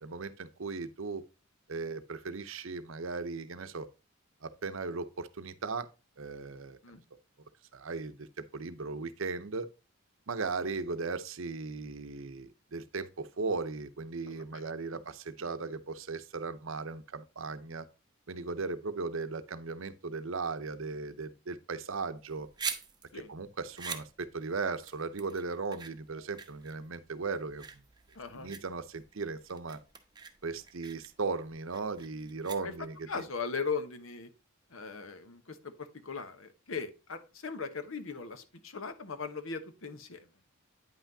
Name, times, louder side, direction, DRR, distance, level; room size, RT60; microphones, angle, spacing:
voice 1, 0.0-1.2 1.7-3.9 4.4-5.9 6.2-6.8 7.7-8.3 8.5-9.7 10.3-17.9 18.3-22.5 23.1-27.6 28.3-29.8 30.4-33.2, right 4 dB, 65° right, 0.7 m, -37 dB
voice 2, 14.3-15.0 23.1-23.3 28.1-28.6 32.6-32.7 33.1-34.3 34.7-40.3, left 5 dB, 70° left, 1.1 m, -39 dB
sound 1, 22.2-33.1, right 6 dB, 20° right, 0.8 m, -44 dB
9.2 x 5.8 x 2.7 m
head